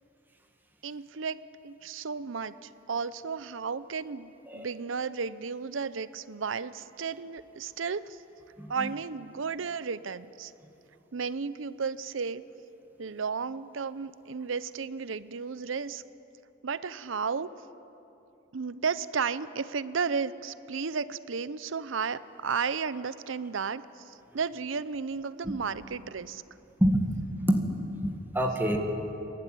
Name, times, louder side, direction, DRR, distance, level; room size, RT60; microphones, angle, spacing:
voice 1, 0.8-8.2 8.7-10.5 11.1-12.4 13.0-16.0 16.6-17.5 18.5-26.4, right 5 dB, 75° right, 16 dB, 0.7 m, -33 dB
voice 2, 8.6-8.9 26.8-27.0 27.5-28.8, equal, 10° right, 2 dB, 1.9 m, -27 dB
28.5 x 12.0 x 9.2 m, 3.0 s
head